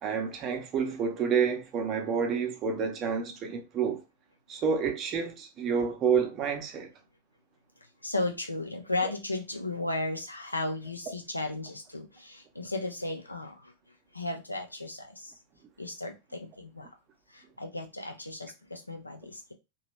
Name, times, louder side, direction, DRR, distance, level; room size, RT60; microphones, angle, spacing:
voice 1, 0.0-4.0 4.5-6.9, right 6 dB, 35° right, 0.7 m, -29 dB
voice 2, 8.0-13.7 14.1-15.3 15.8-16.9 17.3-19.5, left 2 dB, 85° left, 0.5 m, -35 dB
2.9 x 2.3 x 2.9 m
figure-of-eight pair, 90°, 0 cm